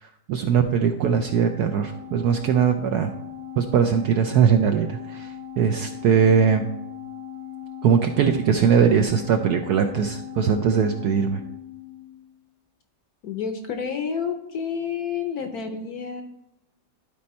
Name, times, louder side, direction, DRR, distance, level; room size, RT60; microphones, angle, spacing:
voice 1, 0.0-3.1 3.6-6.6 7.8-11.4, right 7 dB, 75° right, 6 dB, 0.9 m, -21 dB
Organ, 1.1-12.4, left 8 dB, 5° right, 0.6 m, -39 dB
voice 2, 13.2-16.2, left 6 dB, 65° left, 6 dB, 1.0 m, -29 dB
12.0 x 4.3 x 4.2 m, 0.88 s
omnidirectional pair, 2.1 m